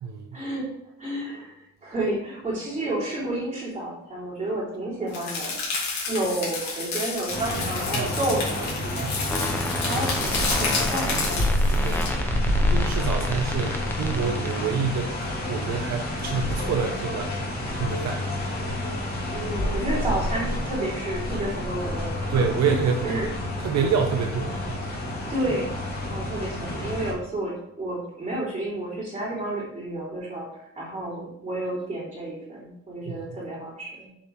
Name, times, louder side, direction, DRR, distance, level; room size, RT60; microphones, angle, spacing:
voice 1, 0.3-0.7 1.0-1.6 1.8-9.1 9.8-12.1 19.3-23.3 25.3-25.7 26.1-30.5 30.8-34.1, right 1 dB, 25° right, -8 dB, 3.6 m, -31 dB
sound 1, 5.1-12.1, left 4 dB, 65° left, 2.7 m, -30 dB
sound 2, 7.3-27.1, left 1 dB, 30° left, 2.5 m, -28 dB
voice 2, 9.0-9.9 11.8-12.0 12.7-15.1 15.5-18.3 18.7-18.8 22.3-23.2 23.6-24.9 33.1-33.2, right 6 dB, 60° right, 3 dB, 0.9 m, -27 dB
sound 3, 9.3-14.6, left 1 dB, 5° left, 0.8 m, -31 dB
7.3 x 5.2 x 5.2 m, 0.77 s
cardioid pair, 175°, 29 cm